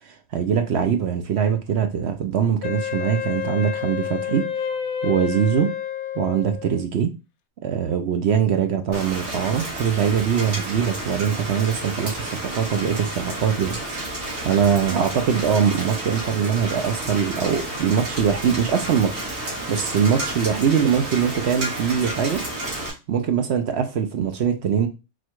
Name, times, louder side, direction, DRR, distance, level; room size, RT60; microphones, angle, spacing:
voice 1, 0.1-4.5 5.0-5.7 6.2-7.1 7.6-12.3 12.5-13.8 14.1-19.2 19.7-22.4 23.1-24.9, right 8 dB, 60° right, 0.7 m, -22 dB
Wind instrument woodwind instrument, 2.6-6.9, left 8 dB, 75° left, 1.0 m, -29 dB
Rain, 8.9-22.9, right 1 dB, 80° right, 2.3 m, -31 dB
4.3 x 2.3 x 4.5 m
omnidirectional pair, 1.5 m